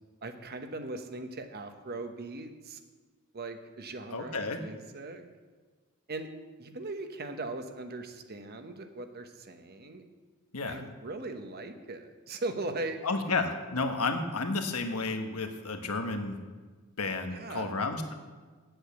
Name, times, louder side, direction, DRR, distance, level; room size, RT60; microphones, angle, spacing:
voice 1, 0.2-2.8 3.3-5.2 6.1-6.3 6.6-10.0 10.7-13.4 17.3-17.7, right 2 dB, 45° right, 7 dB, 0.9 m, -39 dB
voice 2, 4.1-4.6 10.5-10.8 13.0-16.4 17.0-18.1, left 3 dB, 80° left, 5 dB, 1.2 m, -31 dB
8.7 x 8.0 x 8.1 m, 1.4 s
head